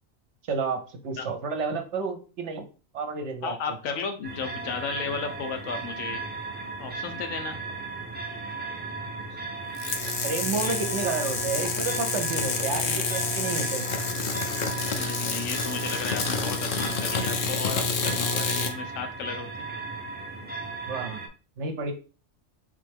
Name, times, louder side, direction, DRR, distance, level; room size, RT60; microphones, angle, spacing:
voice 1, 0.5-2.7 2.9-3.8 9.3-9.4 10.2-13.9 20.9-21.2 21.6-21.9, right 4 dB, 65° right, 6 dB, 1.0 m, -31 dB
voice 2, 3.4-6.2 6.8-7.6 15.0-19.7, left 6 dB, 85° left, 6 dB, 1.1 m, -34 dB
sound 1, 4.2-21.3, right 3 dB, 15° right, 0.4 m, -36 dB
sound 2, 9.7-18.7, left 4 dB, 55° left, 0.6 m, -29 dB
3.6 x 3.2 x 3.4 m, 0.35 s
omnidirectional pair, 1.4 m